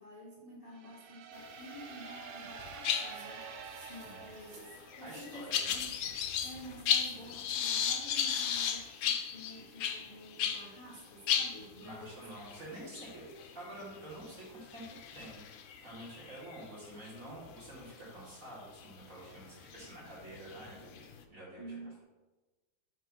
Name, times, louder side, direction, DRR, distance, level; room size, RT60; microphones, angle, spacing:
voice 1, 0.0-12.2 13.0-13.1 21.6-22.0, equal, 30° left, -6 dB, 1.3 m, -50 dB
sound 1, 0.7-5.5, right 6 dB, 85° right, 1.6 m, -48 dB
sound 2, 1.7-2.2 2.5-10.7 11.0-11.1 11.3-17.1 17.7-17.9 18.8-18.9 19.5-21.2, left 8 dB, 75° left, 1.3 m, -35 dB
sound 3, 3.0-8.6, right 3 dB, 70° right, 2.2 m, -58 dB
voice 2, 5.0-5.9 11.8-13.2 13.5-15.4 15.8-21.8, right 1 dB, 40° right, -7 dB, 2.5 m, -48 dB
7.8 x 3.0 x 5.3 m, 1.2 s
omnidirectional pair, 2.3 m